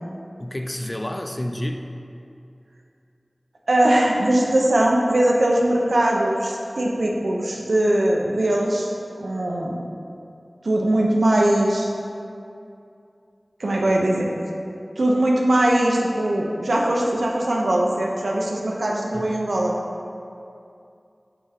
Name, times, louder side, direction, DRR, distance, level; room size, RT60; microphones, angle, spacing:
voice 1, 0.4-1.8 19.1-19.5, left 1 dB, 35° left, 5 dB, 0.4 m, -30 dB
voice 2, 3.7-8.9 9.2-9.8 10.6-11.9 13.6-14.3 15.0-19.8, right 1 dB, 90° right, -2 dB, 0.6 m, -20 dB
5.5 x 4.8 x 3.5 m, 2.5 s
wide cardioid pair, 40°, 0 cm